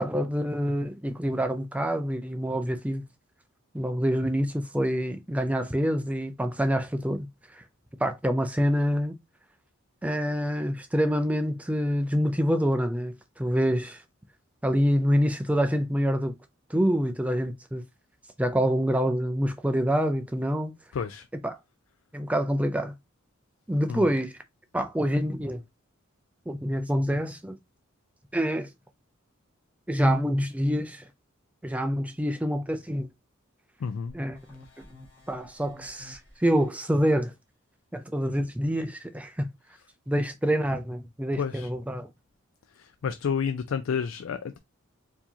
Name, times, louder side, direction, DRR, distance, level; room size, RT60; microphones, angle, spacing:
voice 1, 0.0-3.0 3.7-7.3 7.5-7.6 8.0-9.2 10.0-14.0 14.6-16.3 16.7-17.8 18.4-20.7 21.4-21.6 22.1-22.9 23.7-24.4 24.7-25.6 26.5-27.6 28.3-28.7 29.9-31.1 31.6-33.1 34.1-34.4 35.3-37.3 37.9-39.5 40.1-42.1, equal, 5° right, 0.3 m, -26 dB
voice 2, 20.9-21.3 23.9-24.1 33.8-34.1 41.3-41.7 42.7-44.6, left 6 dB, 75° left, 0.4 m, -30 dB
sound 1, 34.1-36.8, left 2 dB, 10° left, 1.7 m, -51 dB
4.5 x 2.7 x 2.7 m
head